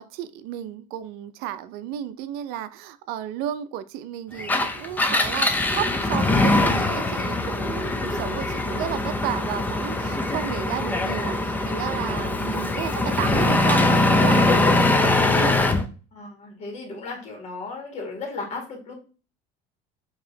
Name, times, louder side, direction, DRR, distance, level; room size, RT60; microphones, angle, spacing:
voice 1, 0.0-15.6, right 11 dB, 70° right, 0.5 m, -33 dB
Engine, 4.4-15.9, left 2 dB, 10° left, 0.5 m, -22 dB
voice 2, 16.1-18.9, left 3 dB, 40° left, 1.7 m, -35 dB
4.8 x 3.0 x 2.7 m
supercardioid pair, 115°, 17 cm